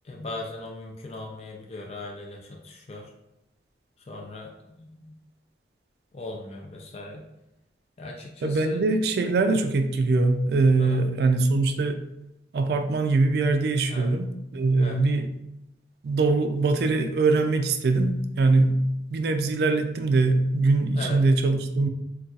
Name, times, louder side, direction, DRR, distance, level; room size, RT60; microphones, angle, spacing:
voice 1, 0.0-3.1 4.0-5.2 6.1-7.3 8.0-8.8 10.8-11.0 13.9-14.1 14.8-15.0 20.9-21.2, left 2 dB, 35° left, -1 dB, 0.4 m, -38 dB
voice 2, 8.4-12.0 12.5-15.3 16.0-18.8 19.1-21.9, right 3 dB, 60° right, 7 dB, 0.3 m, -22 dB
3.9 x 2.3 x 2.3 m, 0.88 s
head